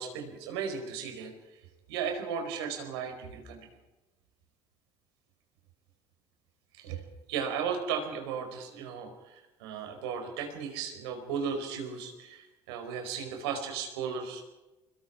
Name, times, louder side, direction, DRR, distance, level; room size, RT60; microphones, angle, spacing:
voice 1, 0.0-1.6 1.9-3.6 6.7-7.0 7.3-14.4, right 6 dB, 90° right, 4 dB, 4.7 m, -35 dB
26.5 x 21.0 x 5.0 m, 1.1 s
supercardioid pair, 80°, 13 cm